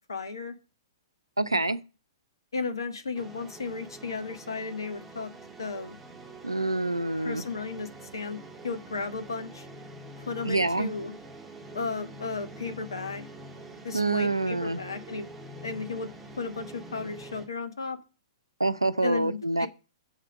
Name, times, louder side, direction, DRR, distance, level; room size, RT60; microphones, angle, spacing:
voice 1, 0.1-0.5 2.5-5.3 5.6-6.0 7.2-8.4 8.6-9.7 10.2-11.1 11.7-13.3 13.8-15.3 15.6-18.0 19.0-19.7, left 4 dB, 70° left, 1.4 m, -34 dB
voice 2, 1.4-1.8 6.4-7.4 10.4-10.9 13.9-14.8 18.6-19.7, right 2 dB, 85° right, 0.7 m, -26 dB
sound 1, 3.1-17.5, right 1 dB, 5° right, 2.5 m, -45 dB
7.2 x 5.0 x 7.1 m
figure-of-eight pair, 115°, 2 cm